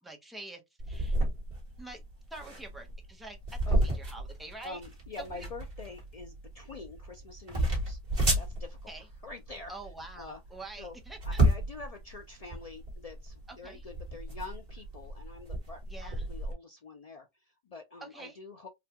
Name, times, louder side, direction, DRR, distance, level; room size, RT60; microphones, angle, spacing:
voice 1, 0.0-0.6 0.9-1.2 1.8-2.0 2.3-4.8 5.2-5.5 8.9-9.1 9.7-11.4 13.5-13.8 15.9-16.3 18.0-18.4, right 2 dB, ahead, 0.5 m, -46 dB
sound 1, 0.8-16.5, right 1 dB, 40° right, 1.4 m, -32 dB
voice 2, 3.7-4.0 4.6-8.9 9.2-9.7 10.2-10.4 10.8-11.0 11.3-18.7, left 3 dB, 65° left, 0.3 m, -46 dB
3.9 x 2.2 x 2.8 m
omnidirectional pair, 1.2 m